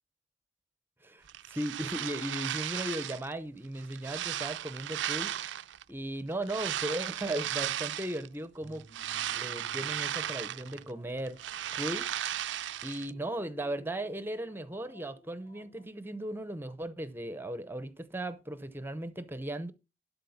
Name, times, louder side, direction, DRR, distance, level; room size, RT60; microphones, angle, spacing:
voice 1, 1.0-5.5 5.9-8.8 9.3-11.4 11.7-12.3 12.8-19.7, right 1 dB, 10° right, 0.6 m, -37 dB
sound 1, 1.3-3.3 3.8-5.8 6.4-8.3 8.7-10.9 11.2-13.1, right 11 dB, 75° right, 0.4 m, -35 dB
sound 2, 8.2-15.9, right 1 dB, 30° left, 4.6 m, -58 dB
12.0 x 4.3 x 7.0 m
head